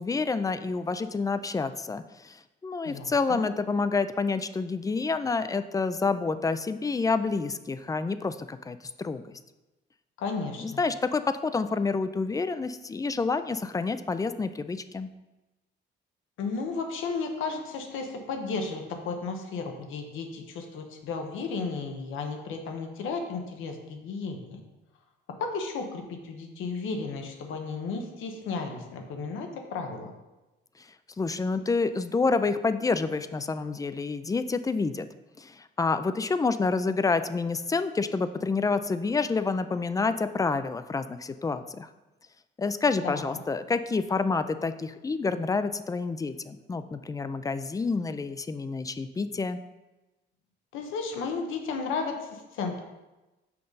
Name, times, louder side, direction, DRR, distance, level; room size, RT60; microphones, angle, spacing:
voice 1, 0.0-9.4 10.6-15.1 31.2-35.1 35.4-41.9 42.6-49.6, left 4 dB, 15° left, 12 dB, 0.3 m, -28 dB
voice 2, 2.8-3.5 10.2-10.8 16.4-24.6 25.4-30.1 43.0-43.4 50.7-52.8, left 4 dB, 85° left, 4 dB, 0.9 m, -34 dB
5.8 x 5.0 x 3.9 m, 1.1 s
cardioid pair, 90°, 20 cm